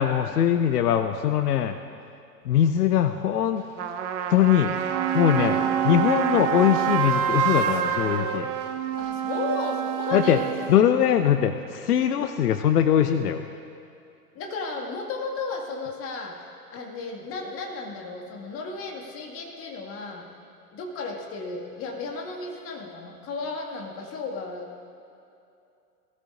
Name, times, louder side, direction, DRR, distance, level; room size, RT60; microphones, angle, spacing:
voice 1, 0.0-1.8 2.4-3.6 4.3-4.7 5.1-5.6 5.8-8.5 10.1-10.4 10.7-13.5, left 10 dB, 65° left, 8 dB, 0.7 m, -21 dB
Trumpet, 3.8-8.4, right 8 dB, 45° right, 1.0 m, -31 dB
sound 1, 4.6-10.8, right 9 dB, 25° right, 0.6 m, -27 dB
voice 2, 5.4-5.7 9.0-10.8 14.3-20.3 20.7-24.8, left 3 dB, 25° left, 0 dB, 2.0 m, -34 dB
19.5 x 13.5 x 2.5 m, 2.6 s
figure-of-eight pair, 105°, 49 cm